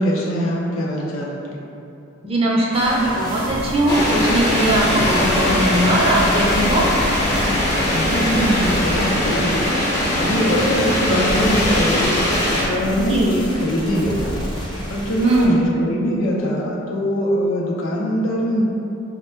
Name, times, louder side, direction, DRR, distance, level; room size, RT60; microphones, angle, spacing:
voice 1, 0.0-1.4 7.9-9.6 10.1-12.1 12.6-14.4 14.9-18.6, equal, 75° left, -3 dB, 0.6 m, -22 dB
voice 2, 2.2-6.9 10.3-10.6 13.0-13.4 15.2-15.6, right 1 dB, 25° right, -4 dB, 0.4 m, -19 dB
sound 1, 2.7-15.5, equal, 20° left, 0.7 m, -29 dB
sound 2, 3.9-12.6, left 1 dB, 50° left, 0.9 m, -21 dB
3.3 x 2.2 x 4.3 m, 2.7 s
head